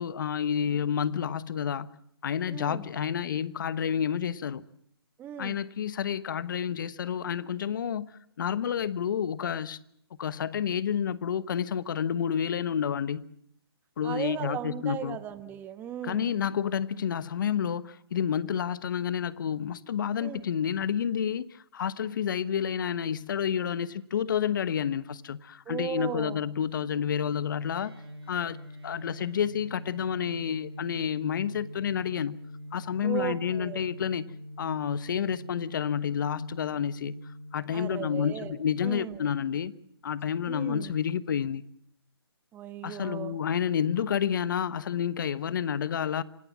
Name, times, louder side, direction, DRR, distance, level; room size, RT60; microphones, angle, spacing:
voice 1, 0.0-2.0 2.2-4.6 5.4-8.1 8.4-9.8 10.2-13.3 14.0-15.2 16.0-27.9 28.3-28.6 28.8-32.4 32.7-34.2 34.6-37.2 37.5-39.7 40.0-41.6 42.8-46.2, left 8 dB, 50° left, 1.1 m, -29 dB
voice 2, 2.5-2.9 5.2-5.6 14.0-16.3 20.2-20.4 25.7-26.4 33.0-33.8 37.7-38.6 38.8-39.3 40.5-40.9 42.5-43.4, right 10 dB, 15° right, 1.3 m, -36 dB
sound 1, 27.7-38.2, left 1 dB, 75° right, 7.8 m, -44 dB
26.5 x 18.0 x 7.3 m
hypercardioid pair, 145°, 13 cm